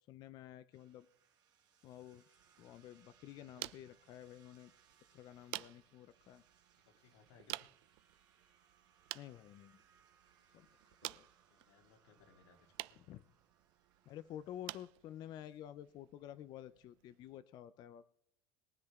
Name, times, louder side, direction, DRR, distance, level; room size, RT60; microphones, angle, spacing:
voice 1, 0.1-1.1 1.8-2.2 2.6-4.7 5.1-6.4 9.1-9.8 10.5-10.7 11.0-11.3 13.0-13.2 14.1-18.1, left 11 dB, 30° left, 13 dB, 0.4 m, -51 dB
sound 1, 0.7-14.9, right 7 dB, 30° right, 1.9 m, -71 dB
sound 2, 2.4-17.4, right 20 dB, 65° right, 0.4 m, -52 dB
voice 2, 7.0-7.7 11.5-13.0, left 6 dB, 80° left, 3 dB, 2.1 m, -65 dB
21.5 x 7.6 x 3.5 m, 0.74 s
cardioid pair, 175°, 14 cm